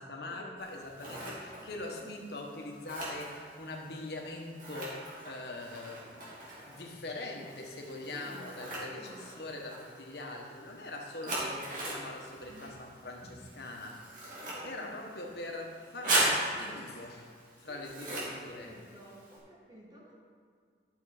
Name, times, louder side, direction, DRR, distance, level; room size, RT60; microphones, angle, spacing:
voice 1, 0.0-6.4 6.6-14.4 14.6-17.3 17.6-18.7, left 2 dB, 65° left, 1 dB, 1.4 m, -43 dB
Scissors, 0.6-19.4, right 1 dB, 50° right, 2.9 m, -39 dB
voice 2, 1.8-2.2 8.1-8.5 8.9-9.2 12.5-12.8 14.4-14.9 17.7-20.2, equal, 25° right, -3 dB, 2.0 m, -52 dB
12.0 x 7.0 x 5.0 m, 2.1 s
head